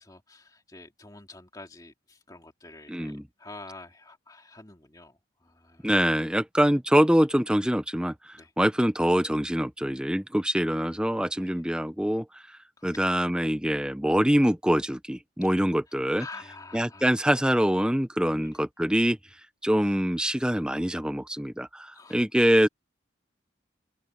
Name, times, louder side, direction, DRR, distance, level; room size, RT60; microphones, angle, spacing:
voice 1, 0.0-5.9 8.3-8.5 11.3-11.6 12.8-13.0 16.2-17.0 18.3-18.6 21.9-22.5, left 3 dB, 20° left, 2.5 m, -47 dB
voice 2, 2.9-3.2 5.8-12.3 12.8-16.3 16.7-19.2 19.6-22.7, equal, 5° right, 0.9 m, -24 dB
head